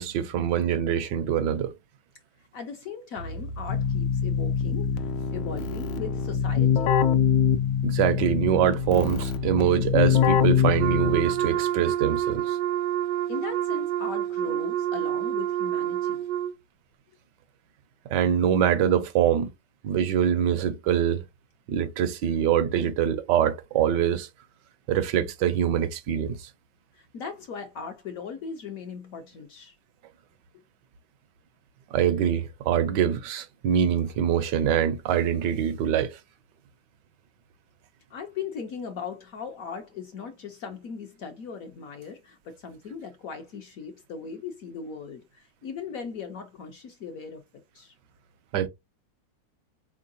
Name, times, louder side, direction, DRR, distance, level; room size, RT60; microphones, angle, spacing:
voice 1, 0.0-1.7 7.8-12.6 18.1-19.5 19.8-21.2 21.7-24.3 24.9-26.5 31.9-36.2 48.5-48.7, right 9 dB, 70° right, 1.2 m, -24 dB
voice 2, 2.5-4.9 5.3-6.9 13.3-16.2 27.0-29.7 38.1-47.4 47.7-47.9, left 6 dB, 65° left, 0.9 m, -38 dB
Keyboard (musical), 3.2-11.5, left 7 dB, 80° left, 1.4 m, -24 dB
Wind instrument woodwind instrument, 10.8-16.6, right 11 dB, 90° right, 1.4 m, -28 dB
4.4 x 3.7 x 2.6 m
omnidirectional pair, 2.1 m